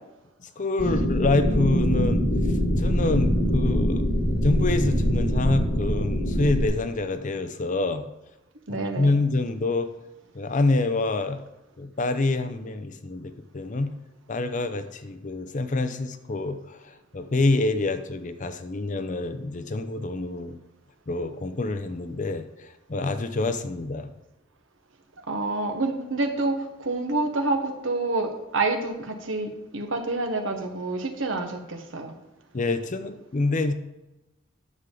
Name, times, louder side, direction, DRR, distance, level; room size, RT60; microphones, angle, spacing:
voice 1, 0.4-2.2 2.8-4.1 4.4-8.1 8.7-9.9 10.3-11.4 11.8-13.9 14.3-20.6 21.1-24.1 32.5-33.7, left 2 dB, 40° left, 10 dB, 0.6 m, -26 dB
sound 1, 0.8-6.7, equal, 85° left, 2.3 m, -23 dB
voice 2, 8.7-9.2 25.3-32.1, right 2 dB, 70° right, 5 dB, 1.3 m, -28 dB
9.8 x 7.2 x 3.8 m, 1.0 s
head